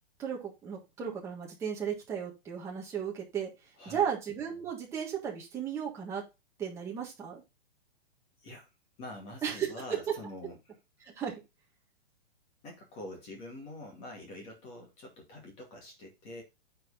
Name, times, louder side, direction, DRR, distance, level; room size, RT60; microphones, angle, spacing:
voice 1, 0.2-3.5 3.8-6.2 6.6-7.4 9.4-10.0 11.0-11.4, right 8 dB, 10° right, -2 dB, 1.6 m, -35 dB
voice 2, 9.0-10.6 12.6-16.4, left 1 dB, 20° left, 1 dB, 2.3 m, -45 dB
9.5 x 4.5 x 4.0 m, 0.24 s
hypercardioid pair, 175°, 32 cm